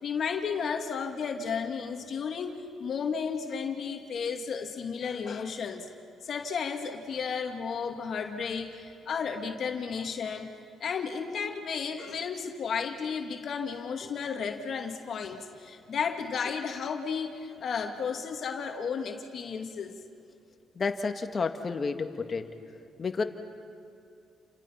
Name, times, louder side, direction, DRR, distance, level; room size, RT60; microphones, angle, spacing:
voice 1, 0.0-5.9 6.2-10.5 10.8-20.0, left 6 dB, 55° left, 3 dB, 2.3 m, -33 dB
voice 2, 20.8-22.5 23.0-23.2, left 4 dB, 40° left, 6 dB, 2.0 m, -30 dB
29.5 x 28.5 x 5.9 m, 2.5 s
cardioid pair, 90°, 0 cm